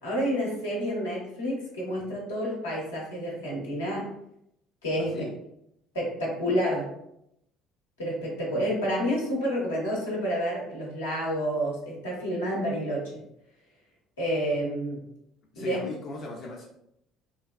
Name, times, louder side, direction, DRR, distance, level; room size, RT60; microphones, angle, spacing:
voice 1, 0.0-4.1 4.8-5.3 5.9-6.9 8.0-13.2 14.2-15.0 15.6-15.8, equal, 80° left, -4 dB, 0.9 m, -29 dB
voice 2, 5.0-5.3 15.5-16.6, left 2 dB, 45° left, -2 dB, 0.5 m, -37 dB
3.2 x 2.2 x 2.3 m, 0.77 s
figure-of-eight pair, 55°, 0 cm